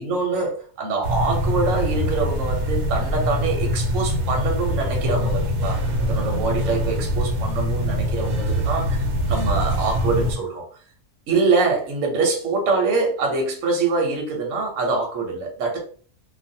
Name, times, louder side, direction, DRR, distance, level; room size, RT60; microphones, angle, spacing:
voice 1, 0.0-10.6 11.3-15.8, right 4 dB, 60° right, 1.0 m, -24 dB
sound 1, 1.0-10.4, equal, 80° right, 1.1 m, -23 dB
2.5 x 2.5 x 2.7 m
omnidirectional pair, 1.7 m